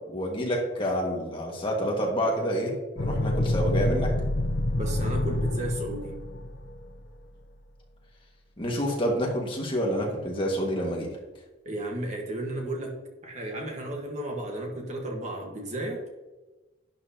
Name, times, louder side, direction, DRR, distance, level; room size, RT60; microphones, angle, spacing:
voice 1, 0.1-4.1 8.6-11.2, equal, 25° left, -1 dB, 1.8 m, -28 dB
sound 1, 3.0-7.1, left 1 dB, 65° left, 0.7 m, -27 dB
voice 2, 4.7-6.2 11.6-16.0, right 1 dB, 35° right, 1 dB, 1.5 m, -34 dB
11.5 x 9.4 x 2.9 m, 1.2 s
head